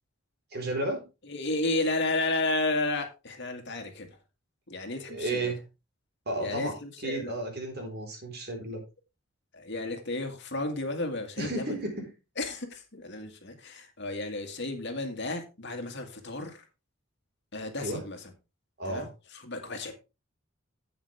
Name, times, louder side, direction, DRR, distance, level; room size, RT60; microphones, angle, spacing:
voice 1, 0.5-1.1 4.9-5.6 6.3-6.7 7.0-8.8 11.4-12.1 17.8-18.0 18.8-19.1, right 2 dB, 55° right, 2 dB, 4.2 m, -33 dB
voice 2, 1.2-4.1 4.7-5.5 6.4-7.3 9.5-11.7 12.4-16.6 17.5-18.2 18.9-19.9, left 2 dB, 60° left, 6 dB, 2.0 m, -32 dB
11.0 x 8.3 x 3.4 m, 0.28 s
head